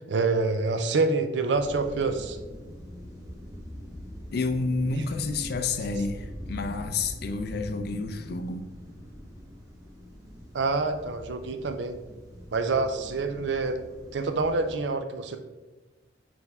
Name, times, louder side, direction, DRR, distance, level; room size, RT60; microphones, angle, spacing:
voice 1, 0.1-2.4 10.5-11.9 12.5-13.8 14.1-15.4, right 3 dB, 70° right, 7 dB, 0.5 m, -26 dB
sound 1, 1.5-14.8, equal, 20° right, 1.4 m, -43 dB
voice 2, 4.3-8.7, left 3 dB, 60° left, 7 dB, 0.5 m, -29 dB
8.3 x 3.4 x 3.5 m, 1.2 s
head